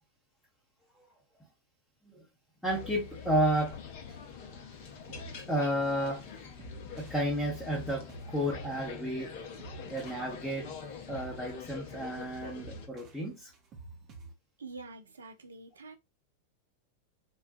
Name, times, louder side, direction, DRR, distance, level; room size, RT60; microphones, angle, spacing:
voice 1, 2.6-3.7 5.5-6.3 7.0-9.4 9.9-10.7 11.1-13.5, right 1 dB, ahead, 0.9 m, -32 dB
sound 1, 2.7-12.9, left 6 dB, 50° left, 0.6 m, -45 dB
sound 2, 4.1-14.3, right 3 dB, 30° right, 0.8 m, -51 dB
voice 2, 14.6-16.0, right 3 dB, 70° right, 0.5 m, -46 dB
3.9 x 2.2 x 2.4 m
figure-of-eight pair, 90°, 0 cm